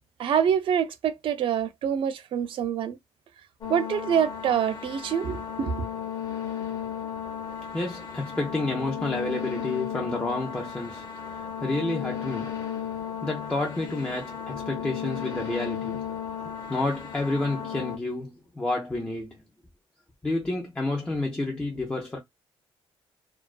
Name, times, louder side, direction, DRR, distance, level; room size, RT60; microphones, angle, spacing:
voice 1, 0.2-3.0 3.7-5.8, right 8 dB, 55° right, 0.4 m, -26 dB
sound 1, 3.6-18.0, left 8 dB, 40° left, 0.8 m, -35 dB
voice 2, 7.7-12.6 13.2-19.4 20.2-22.2, left 2 dB, 10° left, 0.5 m, -30 dB
2.3 x 2.3 x 2.3 m
cardioid pair, 160°, 10 cm